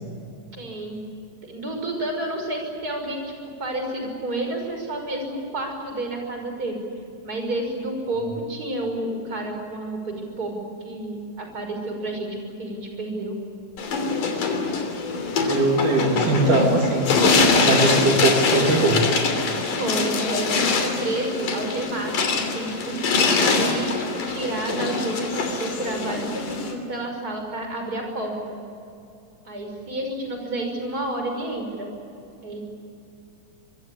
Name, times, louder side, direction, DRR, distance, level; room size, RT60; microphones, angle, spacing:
voice 1, 0.5-1.0 1.4-3.2 3.6-6.8 7.2-13.4 16.2-16.6 19.6-28.6 29.5-31.9 32.4-32.6, right 1 dB, 25° right, 3 dB, 6.3 m, -30 dB
sound 1, 13.8-26.7, left 4 dB, 75° left, 4.6 m, -23 dB
voice 2, 15.4-17.1 17.6-19.0, right 2 dB, 65° right, 0 dB, 4.2 m, -20 dB
26.0 x 23.0 x 8.7 m, 2.6 s
omnidirectional pair, 3.9 m